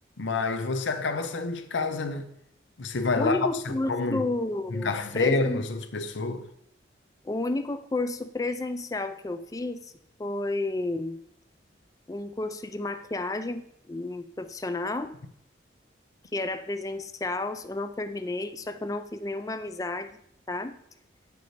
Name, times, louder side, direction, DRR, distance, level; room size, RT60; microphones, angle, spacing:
voice 1, 0.2-2.3 2.8-3.4 3.7-4.3 4.7-6.4, left 3 dB, 80° left, 0.7 m, -28 dB
voice 2, 3.2-5.7 7.2-9.9 10.2-11.2 12.1-15.1 16.3-20.2 20.5-20.8, left 2 dB, 20° left, 0.3 m, -31 dB
9.5 x 6.8 x 3.3 m
head